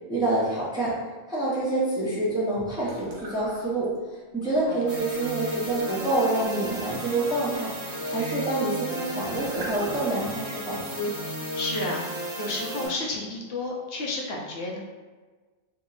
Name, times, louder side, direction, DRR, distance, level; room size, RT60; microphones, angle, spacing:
voice 1, 0.1-0.9 1.3-3.9 4.3-11.1, right 2 dB, 5° right, -7 dB, 0.5 m, -27 dB
sound 1, 2.8-4.0 4.4-10.3, right 2 dB, 80° right, 1.0 m, -44 dB
voice 2, 4.3-4.8 11.5-12.0 12.4-14.8, left 2 dB, 70° left, -2 dB, 0.8 m, -31 dB
sound 2, 4.9-12.9, right 1 dB, 35° right, 1.1 m, -34 dB
2.8 x 2.1 x 3.8 m, 1.3 s
omnidirectional pair, 1.1 m